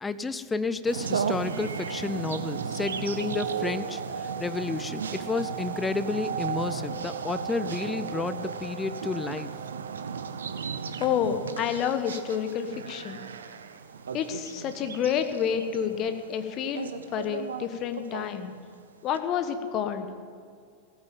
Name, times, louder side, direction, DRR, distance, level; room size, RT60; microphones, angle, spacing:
voice 1, 0.0-9.5, left 3 dB, 10° left, 14 dB, 0.6 m, -31 dB
sound 1, 0.9-18.6 19.1-19.2, right 6 dB, 70° right, 0.8 m, -35 dB
voice 2, 11.0-13.2 14.1-18.5 19.0-20.1, left 8 dB, 35° left, 8 dB, 1.2 m, -29 dB
16.0 x 8.8 x 8.8 m, 2.3 s
figure-of-eight pair, 90°, 0 cm